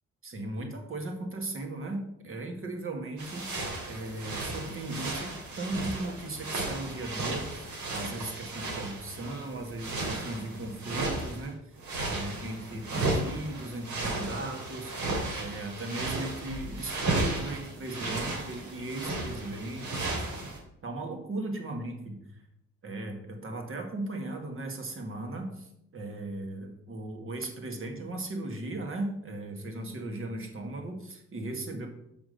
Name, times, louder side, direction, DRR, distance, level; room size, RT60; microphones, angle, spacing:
voice 1, 0.2-20.5 20.8-22.2 22.8-31.9, right 2 dB, 45° right, 3 dB, 2.0 m, -37 dB
sound 1, 3.2-11.5 11.8-20.6, right 2 dB, 75° right, 2.6 m, -34 dB
6.1 x 6.1 x 6.6 m, 0.79 s
cardioid pair, 90°, 30 cm